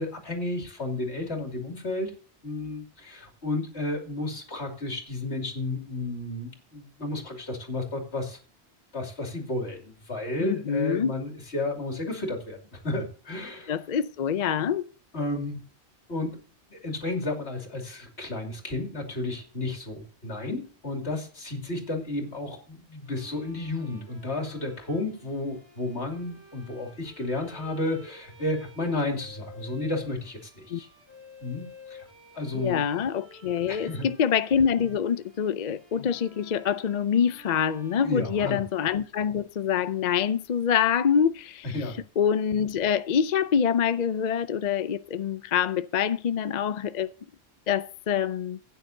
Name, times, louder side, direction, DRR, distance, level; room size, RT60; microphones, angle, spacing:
voice 1, 0.0-2.1 2.4-8.4 8.9-13.7 15.1-15.6 16.1-16.4 16.7-30.9 31.4-32.1 32.3-32.8 33.7-34.1 38.0-38.6 41.6-42.0, left 2 dB, 75° left, 3.0 m, -32 dB
voice 2, 10.4-11.1 13.7-14.9 30.7-30.8 32.5-41.7 42.2-47.1 47.7-48.6, left 8 dB, 50° left, 0.6 m, -25 dB
Bowed string instrument, 23.0-38.9, left 2 dB, 85° right, 4.5 m, -52 dB
16.0 x 9.4 x 2.7 m
omnidirectional pair, 1.1 m